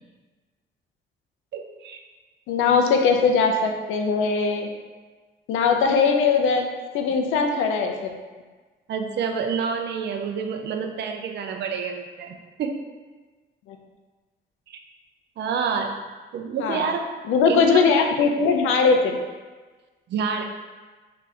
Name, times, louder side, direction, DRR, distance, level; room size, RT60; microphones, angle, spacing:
voice 1, 1.5-2.0 5.9-6.1 8.9-12.8 14.7-14.8 15.4-16.0 16.3-17.0 17.5-18.0 18.9-19.0 20.1-20.4, right 6 dB, 60° right, 4 dB, 0.4 m, -28 dB
voice 2, 2.5-4.7 5.5-6.7 6.9-8.1 13.7-13.8 16.6-16.8 17.3-19.2, left 5 dB, 85° left, 4 dB, 0.5 m, -20 dB
2.8 x 2.4 x 4.0 m, 1.3 s
cardioid pair, 90°, 20 cm